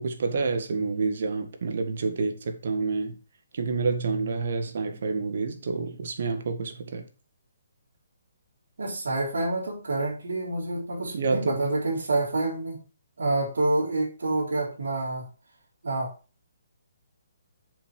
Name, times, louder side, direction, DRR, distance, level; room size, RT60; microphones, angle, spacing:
voice 1, 0.0-3.2 3.5-7.1 11.1-11.6, right 4 dB, 60° right, 1.8 m, -28 dB
voice 2, 8.8-12.8 13.2-15.3 15.8-16.1, right 2 dB, 80° right, 3.7 m, -27 dB
7.0 x 6.3 x 4.9 m
hypercardioid pair, 155°, 0 cm